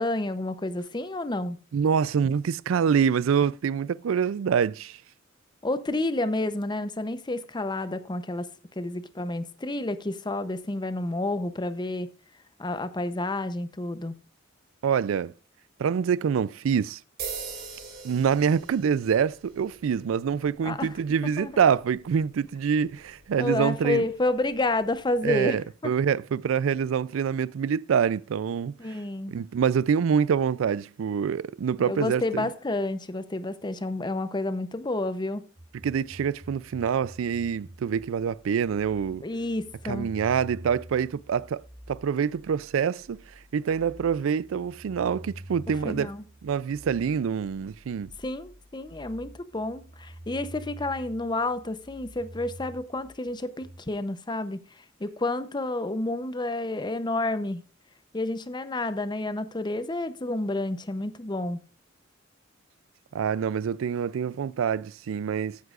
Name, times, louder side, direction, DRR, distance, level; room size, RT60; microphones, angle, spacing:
voice 1, 0.0-1.6 5.6-8.5 8.8-12.1 12.6-14.1 20.6-20.9 21.4-21.5 23.4-25.6 25.8-25.9 28.8-29.3 31.8-35.5 39.2-40.1 45.8-46.2 48.2-57.6 58.1-61.6, left 2 dB, 20° left, 0.7 m, -30 dB
voice 2, 1.7-5.0 14.8-15.3 15.8-17.0 18.0-24.0 25.2-29.0 29.3-32.5 35.8-39.2 39.8-41.6 41.9-43.2 43.5-46.1 46.4-48.1 63.1-65.6, right 7 dB, 85° right, 0.4 m, -26 dB
sound 1, 17.2-25.3, right 5 dB, 50° right, 3.6 m, -44 dB
sound 2, 35.6-53.8, right 1 dB, 30° right, 2.7 m, -47 dB
14.5 x 9.5 x 2.4 m
head